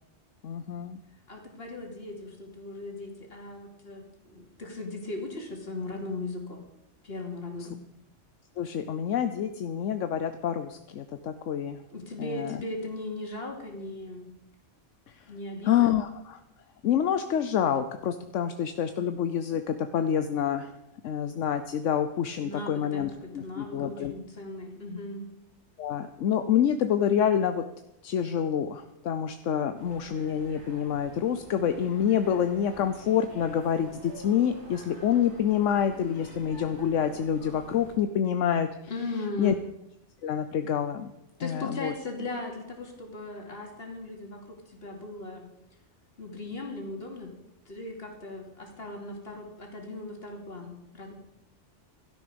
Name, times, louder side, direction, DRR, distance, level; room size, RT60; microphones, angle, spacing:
voice 1, 0.4-1.0 8.6-11.8 12.2-12.6 15.6-16.4 16.8-20.7 21.0-24.1 25.8-27.6 28.0-38.7 39.4-39.5 40.2-41.1 41.4-41.9, left 9 dB, 80° left, 9 dB, 1.1 m, -27 dB
voice 2, 1.3-6.6 7.0-7.8 11.9-14.3 15.3-15.9 22.4-25.3 38.9-39.6 41.4-45.5 46.2-47.3 47.7-51.1, left 2 dB, 55° left, 1 dB, 3.0 m, -38 dB
sound 1, 29.7-37.9, equal, 70° right, 5.1 m, -47 dB
16.5 x 13.0 x 5.2 m, 0.86 s
omnidirectional pair, 1.2 m